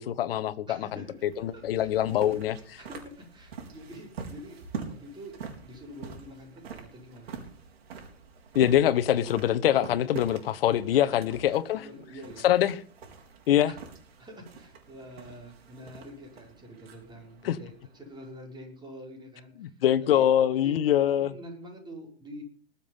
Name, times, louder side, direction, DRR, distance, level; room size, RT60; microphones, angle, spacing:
voice 1, 0.0-2.8 8.5-11.9 12.4-12.8 13.5-13.7 17.4-17.6 19.6-21.3, left 11 dB, 60° left, 1.2 m, -24 dB
voice 2, 0.7-1.3 1.5-1.9 2.8-4.6 4.8-7.4 10.9-11.2 11.5-12.5 13.7-13.8 14.2-19.7 20.0-20.3 20.6-20.8 21.2-22.4, equal, 15° right, 5.5 m, -46 dB
sound 1, 0.8-18.5, right 5 dB, 70° right, 4.3 m, -45 dB
20.5 x 7.3 x 5.5 m
hypercardioid pair, 115°, 32 cm